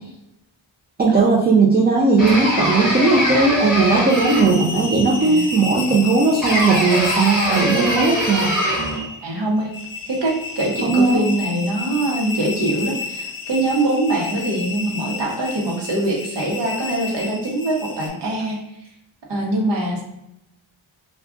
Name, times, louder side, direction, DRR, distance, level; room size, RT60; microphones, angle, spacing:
voice 1, 1.0-8.5 10.8-11.3, right 3 dB, 25° right, -2 dB, 0.3 m, -17 dB
sound 1, 2.2-4.7 6.4-9.0, equal, ahead, 1.0 m, -22 dB
sound 2, 3.8-18.1, left 3 dB, 45° left, 0.9 m, -31 dB
voice 2, 5.2-5.5 9.2-9.7 10.1-18.6 19.3-20.0, right 1 dB, 65° right, -1 dB, 0.9 m, -23 dB
2.3 x 2.3 x 3.6 m, 0.85 s
wide cardioid pair, 120°, 45 cm